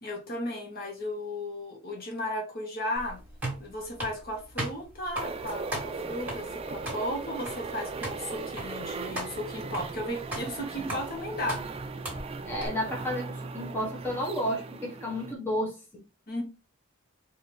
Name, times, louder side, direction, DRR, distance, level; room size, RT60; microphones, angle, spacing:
voice 1, 0.0-3.2 3.6-11.6 16.3-16.4, left 1 dB, 45° left, 1.2 m, -35 dB
sound 1, 3.0-12.7, right 1 dB, 5° right, 1.6 m, -39 dB
sound 2, 5.2-15.3, right 4 dB, 25° right, 0.3 m, -38 dB
voice 2, 12.5-15.8, equal, 10° left, 0.9 m, -32 dB
4.3 x 2.6 x 3.2 m
head